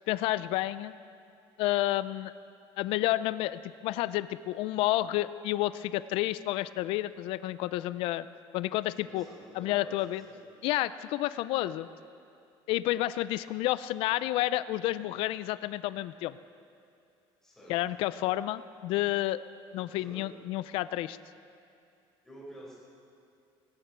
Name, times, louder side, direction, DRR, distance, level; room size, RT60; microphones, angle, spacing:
voice 1, 0.1-0.9 1.6-2.3 2.8-8.3 8.5-9.2 9.6-10.2 10.6-11.9 12.7-16.4 17.7-19.4 19.7-21.2, left 15 dB, 65° left, 16 dB, 0.4 m, -30 dB
voice 2, 9.0-10.5 17.4-17.8 19.9-20.3 22.2-22.7, equal, 5° left, -7 dB, 5.0 m, -49 dB
18.0 x 16.5 x 4.5 m, 2.6 s
cardioid pair, 165°, 10 cm